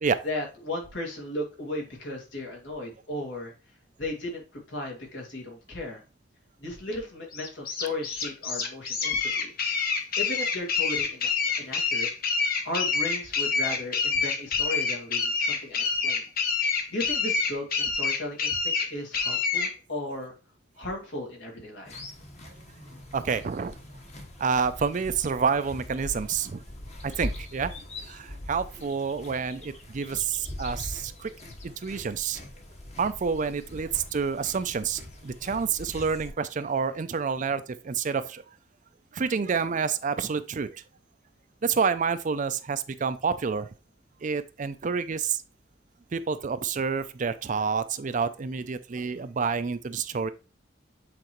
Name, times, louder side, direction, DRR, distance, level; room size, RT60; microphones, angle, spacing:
voice 1, 0.2-3.5 4.0-6.0 6.6-9.5 10.2-11.3 11.6-12.1 12.6-16.3 16.6-20.3 20.8-22.0, left 1 dB, 80° left, 2.3 m, -35 dB
sound 1, 7.3-19.7, left 5 dB, 55° left, 1.1 m, -27 dB
sound 2, 21.9-36.3, left 1 dB, 40° left, 1.3 m, -42 dB
voice 2, 23.1-23.7 24.4-26.6 27.0-27.7 28.1-31.3 31.6-32.4 33.0-38.4 39.1-40.8 41.6-43.7 44.2-45.4 46.1-50.3, right 5 dB, 45° right, 0.4 m, -28 dB
7.8 x 3.9 x 3.1 m
head